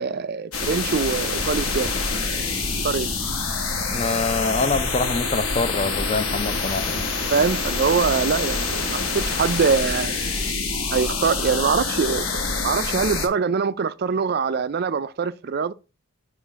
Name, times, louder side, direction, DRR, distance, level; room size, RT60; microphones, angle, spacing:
voice 1, 0.0-2.0 2.8-3.1 7.3-10.2 10.9-15.7, right 5 dB, 45° right, 0.3 m, -23 dB
sound 1, 0.5-13.3, left 4 dB, 80° left, 1.2 m, -26 dB
sound 2, 1.3-10.5, right 1 dB, 5° right, 2.6 m, -38 dB
voice 2, 3.9-7.0, left 3 dB, 30° left, 0.5 m, -25 dB
6.8 x 2.5 x 5.6 m
head